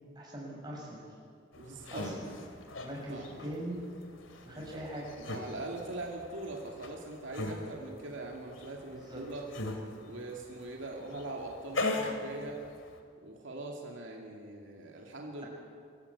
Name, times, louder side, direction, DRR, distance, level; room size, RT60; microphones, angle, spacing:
voice 1, 0.1-1.0 1.9-2.3 2.8-3.8 4.5-5.1 8.9-9.2, right 1 dB, 20° right, -3 dB, 6.1 m, -41 dB
sound 1, 1.5-13.0, left 2 dB, 90° left, 2.4 m, -40 dB
voice 2, 1.6-2.1 3.1-3.3 4.5-4.8 5.2-9.4 10.0-12.6 13.2-15.4, right 2 dB, 80° right, 0 dB, 2.4 m, -42 dB
24.5 x 14.0 x 8.4 m, 2.3 s
head